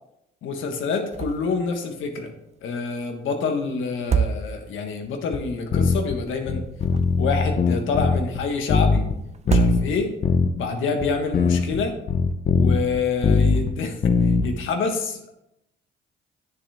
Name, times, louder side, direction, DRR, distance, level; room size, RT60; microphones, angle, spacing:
voice 1, 0.4-2.3 2.6-6.7 7.2-9.1 9.4-10.1 10.5-12.0 12.5-15.4, left 4 dB, 80° left, 4 dB, 1.4 m, -27 dB
sound 1, 1.1-1.6 1.9-2.0 3.9-4.9 6.6-7.5 9.3-10.3, right 7 dB, 35° right, 0.6 m, -25 dB
sound 2, 5.3-5.4 5.7-6.2 6.5-8.4 8.7-9.2 9.5-9.9 10.2-10.5 11.0-11.1 11.3-13.7 14.0-14.5, left 5 dB, 45° left, 1.0 m, -20 dB
9.3 x 6.9 x 3.5 m, 0.82 s
cardioid pair, 90°, 20 cm